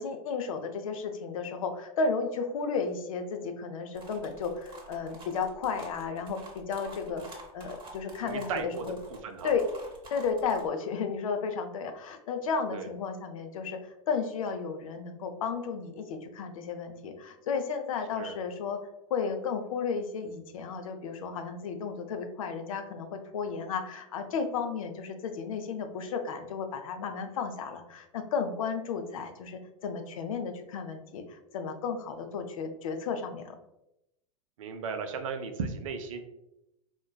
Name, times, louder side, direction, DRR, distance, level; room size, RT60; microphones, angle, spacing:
voice 1, 0.0-7.2 7.5-9.0 9.4-9.6 10.1-13.8 14.1-18.8 19.1-33.6, left 5 dB, 70° left, 6 dB, 0.5 m, -33 dB
sound 1, 3.9-10.7, right 2 dB, 25° right, 0.9 m, -49 dB
voice 2, 8.2-8.8 9.1-9.5 12.7-12.9 18.2-18.4 34.6-36.2, right 5 dB, 65° right, 7 dB, 0.5 m, -35 dB
3.8 x 2.2 x 2.3 m, 0.87 s
hypercardioid pair, 95°, 18 cm